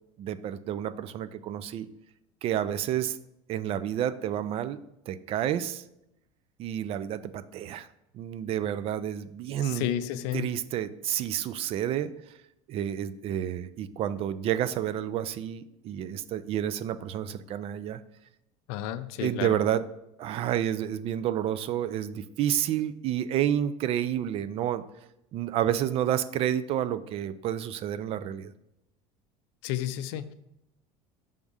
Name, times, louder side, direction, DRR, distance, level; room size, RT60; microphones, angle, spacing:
voice 1, 0.2-1.9 2.4-3.2 3.5-4.8 5.1-5.8 6.6-7.9 8.1-9.9 10.3-12.1 12.7-18.0 19.2-19.8 20.2-24.8 25.3-28.5, right 10 dB, 45° right, 15 dB, 0.4 m, -30 dB
voice 2, 9.6-10.5 18.7-19.6 29.6-30.3, left 12 dB, 80° left, 12 dB, 0.5 m, -32 dB
6.1 x 3.6 x 5.4 m, 0.84 s
cardioid pair, 130°, 14 cm